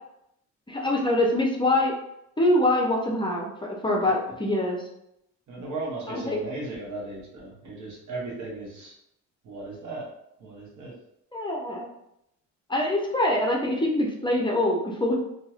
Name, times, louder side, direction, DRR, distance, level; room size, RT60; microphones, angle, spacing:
voice 1, 0.7-1.9 2.4-4.9 6.1-6.4 11.3-11.9 12.7-15.2, left 1 dB, 15° left, -1 dB, 0.6 m, -24 dB
voice 2, 5.5-8.9 9.4-10.1 10.4-10.9, right 2 dB, 75° right, -4 dB, 1.2 m, -36 dB
2.8 x 2.8 x 2.4 m, 0.80 s
cardioid pair, 90°, 30 cm